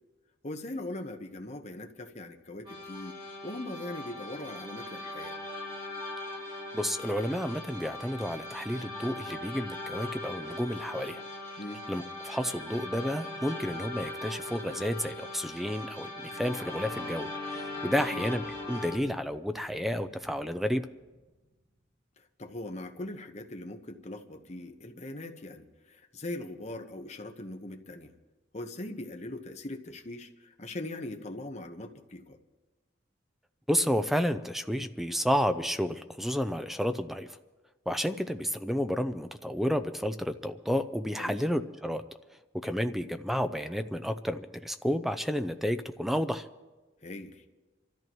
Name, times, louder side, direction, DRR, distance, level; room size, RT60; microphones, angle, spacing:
voice 1, 0.4-3.2 3.4-5.4 11.6-11.9 18.0-18.2 22.2-28.1 28.5-32.4 41.2-41.4 47.0-47.4, left 1 dB, 40° left, 5 dB, 1.0 m, -41 dB
sound 1, 2.6-19.0, left 2 dB, 25° right, 3.0 m, -40 dB
voice 2, 6.7-11.2 11.9-17.3 17.5-20.8 33.7-37.3 37.9-42.0 42.6-46.5, equal, ahead, 9 dB, 0.5 m, -31 dB
sound 2, 17.1-22.0, equal, 45° right, 5.6 m, -60 dB
26.5 x 13.5 x 3.1 m, 1.2 s
head